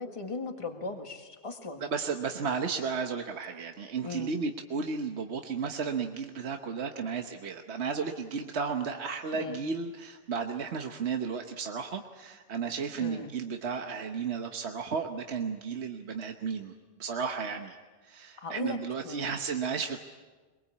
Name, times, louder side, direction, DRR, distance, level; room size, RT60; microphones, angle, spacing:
voice 1, 0.0-1.8 4.0-4.3 9.4-9.6 13.0-13.3 18.4-18.8 19.0-19.3, left 3 dB, 30° left, 5 dB, 1.8 m, -38 dB
voice 2, 1.8-16.7 17.0-17.8 18.0-20.0, right 5 dB, 70° right, 5 dB, 1.4 m, -33 dB
23.0 x 22.5 x 8.5 m, 1.3 s
omnidirectional pair, 1.2 m